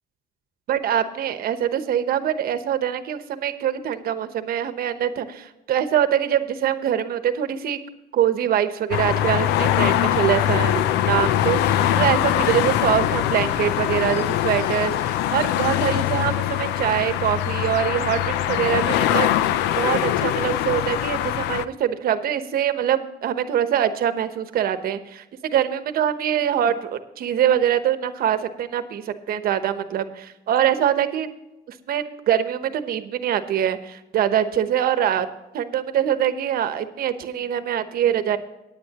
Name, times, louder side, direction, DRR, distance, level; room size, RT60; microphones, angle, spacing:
voice 1, 0.7-7.8 8.1-19.3 19.8-31.3 31.7-35.3 35.5-38.4, right 10 dB, 60° right, 11 dB, 1.0 m, -24 dB
sound 1, 8.9-21.7, left 12 dB, 90° left, 0.6 m, -22 dB
18.0 x 9.6 x 2.9 m, 0.99 s
cardioid pair, 110°, 17 cm